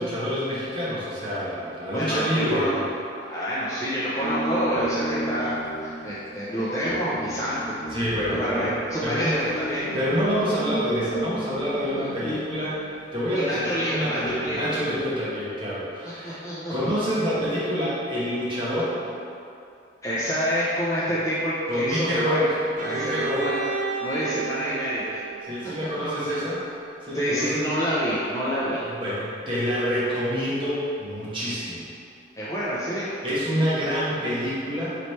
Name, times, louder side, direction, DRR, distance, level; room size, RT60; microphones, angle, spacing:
voice 1, 0.0-2.9 7.9-8.7 9.0-9.3 9.9-16.4 16.7-18.9 21.7-22.6 22.9-23.5 25.4-26.7 27.0-27.6 28.8-31.8 33.2-35.0, equal, 25° right, -10 dB, 1.0 m, -27 dB
voice 2, 1.9-2.7 3.2-5.6 5.8-7.8 8.4-9.9 12.0-12.1 13.3-14.7 16.2-16.9 20.0-22.5 22.8-23.6 24.0-25.2 26.2-26.4 27.1-28.8 32.4-33.1, equal, 15° left, -9 dB, 0.5 m, -27 dB
sound 1, 4.2-13.1 13.8-15.2, right 1 dB, 40° left, 0.8 m, -34 dB
Bowed string instrument, 22.8-26.6, right 4 dB, 45° right, 0.4 m, -32 dB
3.2 x 3.1 x 4.1 m, 2.5 s
head